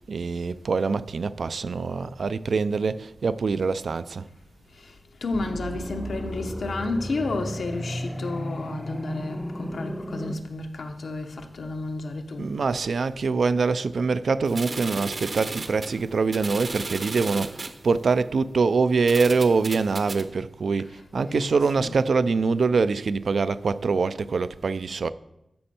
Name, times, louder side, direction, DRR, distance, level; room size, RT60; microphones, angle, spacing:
voice 1, 0.1-4.2 12.4-25.1, right 4 dB, 75° right, 0.4 m, -24 dB
voice 2, 4.7-12.5 20.8-22.0, left 2 dB, 75° left, 0.9 m, -32 dB
sound 1, 5.3-10.3, equal, 5° left, 0.5 m, -34 dB
sound 2, 14.5-17.8 18.5-18.6 19.1-20.2, right 3 dB, 50° right, 0.8 m, -35 dB
13.0 x 5.3 x 4.3 m
wide cardioid pair, 125°, 0 cm